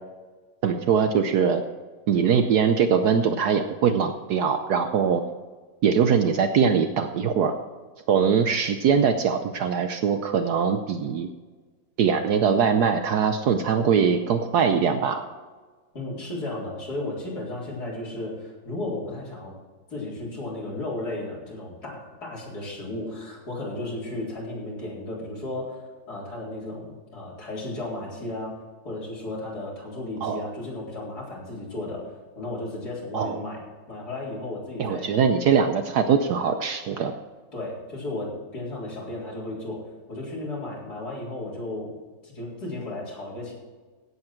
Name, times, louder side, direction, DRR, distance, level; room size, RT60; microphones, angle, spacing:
voice 1, 0.6-1.6 2.1-5.2 5.8-7.5 8.1-11.3 12.0-15.2 30.2-30.4 33.1-33.4 34.8-37.1, right 6 dB, 70° right, 7 dB, 1.2 m, -22 dB
voice 2, 15.9-19.5 19.9-28.5 28.8-32.0 32.4-33.6 33.9-35.1 37.5-39.8 40.1-41.9 42.2-43.5, left 2 dB, 60° left, -5 dB, 4.5 m, -34 dB
16.5 x 8.2 x 4.5 m, 1.4 s
omnidirectional pair, 1.9 m